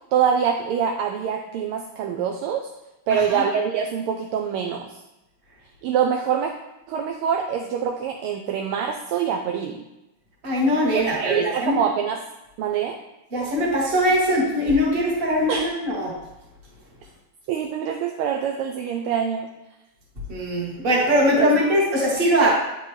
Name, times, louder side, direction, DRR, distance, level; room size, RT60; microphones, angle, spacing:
voice 1, 0.1-2.6 3.1-5.0 5.8-6.5 6.9-9.8 10.9-12.2 12.6-13.0 15.5-15.6 17.5-19.5 21.4-21.5, right 7 dB, 85° right, 2 dB, 1.5 m, -24 dB
voice 2, 3.1-3.5 10.4-11.8 13.3-16.1 20.3-22.5, equal, 30° right, -4 dB, 1.5 m, -21 dB
9.0 x 4.2 x 3.2 m, 0.95 s
omnidirectional pair, 2.3 m